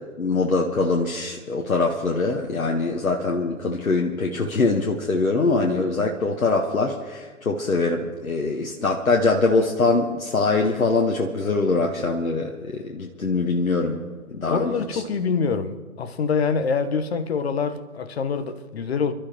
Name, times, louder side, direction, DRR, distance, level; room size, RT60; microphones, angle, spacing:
voice 1, 0.2-14.0 14.3-15.0, left 3 dB, 70° left, 1.4 m, -23 dB
voice 2, 14.5-19.1, left 5 dB, 45° left, 1.2 m, -25 dB
28.5 x 12.5 x 3.0 m
figure-of-eight pair, 135°, 43 cm